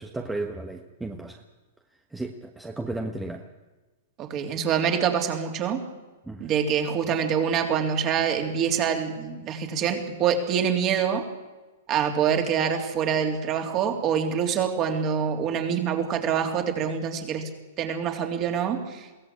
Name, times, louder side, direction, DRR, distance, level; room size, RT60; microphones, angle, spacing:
voice 1, 0.0-1.4 2.1-3.4 6.2-6.5, right 2 dB, 5° right, 4 dB, 1.4 m, -34 dB
voice 2, 4.2-5.8 6.4-11.2 11.9-17.4 17.8-19.1, right 7 dB, 35° right, 4 dB, 3.4 m, -25 dB
22.5 x 17.0 x 8.7 m, 1.2 s
hypercardioid pair, 130°, 0 cm